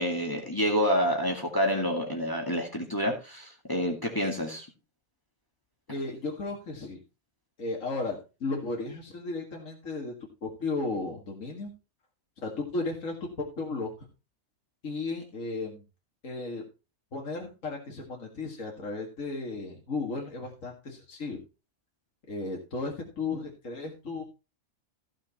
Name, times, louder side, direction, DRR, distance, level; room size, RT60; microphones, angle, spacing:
voice 1, 0.0-4.7, equal, 15° left, 1 dB, 2.1 m, -28 dB
voice 2, 5.9-7.0 7.6-10.1 10.4-11.7 12.4-13.3 13.6-13.9 14.8-15.8 16.2-16.6 17.1-21.4 22.3-24.2, left 3 dB, 80° left, 0 dB, 2.4 m, -34 dB
15.0 x 6.4 x 4.2 m, 0.30 s
omnidirectional pair, 1.3 m